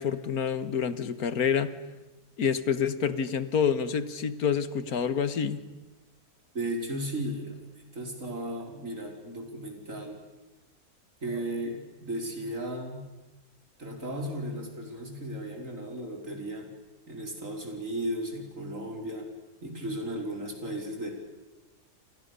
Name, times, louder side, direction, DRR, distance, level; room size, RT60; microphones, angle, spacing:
voice 1, 0.0-1.8 2.4-5.6, left 7 dB, 70° left, 13 dB, 1.8 m, -28 dB
voice 2, 6.5-10.2 11.2-13.0 13.8-16.7 17.1-19.3 19.6-21.1, right 1 dB, 55° right, 2 dB, 5.4 m, -35 dB
29.0 x 27.5 x 6.9 m, 1.1 s
omnidirectional pair, 1.6 m